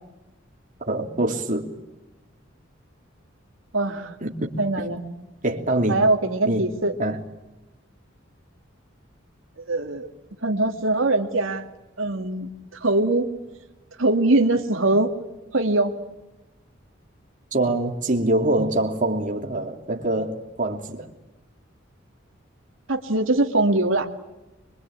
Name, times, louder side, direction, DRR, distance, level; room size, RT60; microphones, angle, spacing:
voice 1, 0.9-1.7 4.2-4.5 5.4-6.0 6.5-6.7 7.0-7.2 17.5-21.1, right 1 dB, 40° right, 3.1 m, -24 dB
voice 2, 3.7-4.2 4.6-5.1 5.9-6.9 9.7-10.1 10.4-11.6 12.0-13.3 14.0-15.1 15.5-16.0 22.9-24.1, right 2 dB, 85° right, 2.4 m, -22 dB
25.0 x 24.0 x 8.8 m
head